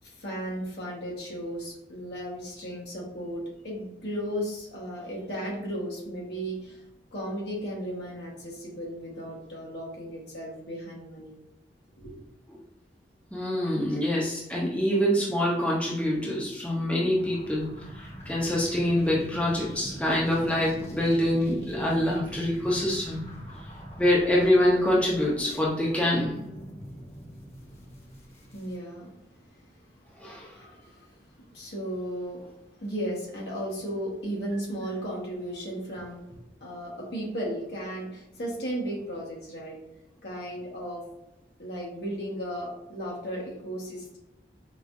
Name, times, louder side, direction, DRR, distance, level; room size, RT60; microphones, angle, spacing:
voice 1, 0.0-6.8 7.1-11.4 12.0-12.2 28.5-29.1 30.5-31.1 31.5-32.4 32.8-36.2 36.6-39.8 40.2-41.0 41.6-44.2, equal, 75° left, -4 dB, 1.2 m, -35 dB
voice 2, 13.3-17.7 18.0-23.2 24.0-26.3 30.2-30.5, left 1 dB, 5° left, -4 dB, 0.6 m, -25 dB
sound 1, 17.1-28.7, equal, 35° left, 1.0 m, -42 dB
4.6 x 2.4 x 2.5 m, 0.90 s
head